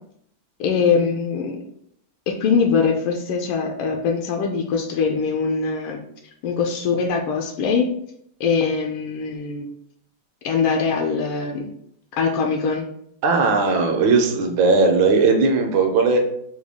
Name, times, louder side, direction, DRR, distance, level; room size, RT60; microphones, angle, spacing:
voice 1, 0.6-1.6 2.3-6.0 6.4-7.9 8.4-9.7 10.4-11.7 12.2-12.9, left 5 dB, 80° left, 1 dB, 1.4 m, -22 dB
voice 2, 13.2-16.2, right 4 dB, 70° right, 2 dB, 1.4 m, -18 dB
4.9 x 2.3 x 3.5 m, 0.70 s
omnidirectional pair, 2.4 m